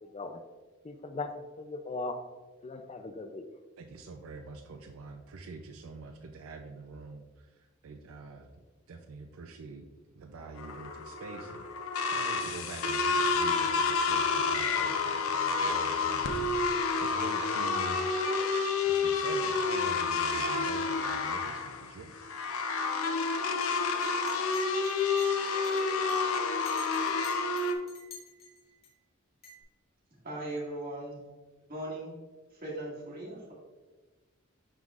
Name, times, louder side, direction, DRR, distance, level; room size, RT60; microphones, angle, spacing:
voice 1, 0.0-0.4 0.8-1.3 1.6-2.2 2.6-3.4, left 3 dB, 30° left, 7 dB, 0.4 m, -38 dB
voice 2, 3.8-7.3 7.8-8.5 8.9-9.9 10.1-11.7 12.1-16.3 17.0-18.0 18.8-22.3, right 3 dB, 75° right, 5 dB, 0.5 m, -45 dB
sound 1, 10.6-27.7, left 4 dB, 80° left, 0.6 m, -29 dB
Chink clink, 24.0-28.9 29.4-29.6, left 4 dB, 50° left, 2.0 m, -50 dB
voice 3, 30.2-31.3 31.7-32.1 32.5-33.5, right 1 dB, 45° right, -4 dB, 1.9 m, -38 dB
11.0 x 3.8 x 2.4 m, 1.3 s
head